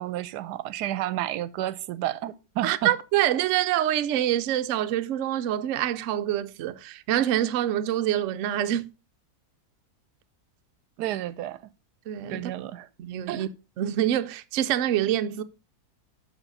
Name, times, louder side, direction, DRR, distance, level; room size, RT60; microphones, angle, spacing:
voice 1, 0.0-2.9 11.0-11.6 12.3-12.9 13.3-13.5, right 13 dB, 90° right, 1.2 m, -31 dB
voice 2, 2.6-8.9 12.1-12.5 13.0-13.5 13.8-15.4, right 12 dB, 65° right, 0.8 m, -26 dB
7.2 x 5.6 x 5.2 m
omnidirectional pair, 1.7 m